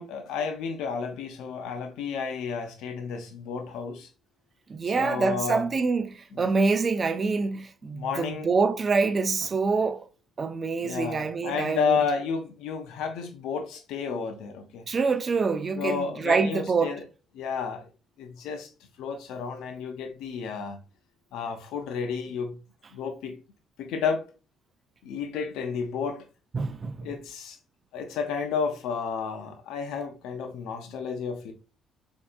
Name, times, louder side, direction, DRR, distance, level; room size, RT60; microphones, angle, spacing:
voice 1, 0.0-4.1 4.9-5.6 7.9-8.5 10.8-14.8 15.8-17.0 17.3-17.9 18.2-18.7 19.0-20.8 21.3-22.5 22.9-23.4 23.8-24.3 25.0-26.2 27.0-27.6 27.9-31.5, left 6 dB, 85° left, 0.5 m, -31 dB
voice 2, 4.7-10.1 10.4-12.0 14.9-17.0 26.5-27.1, right 4 dB, 40° right, 0.4 m, -26 dB
4.3 x 2.7 x 2.3 m
supercardioid pair, 75°, 0 cm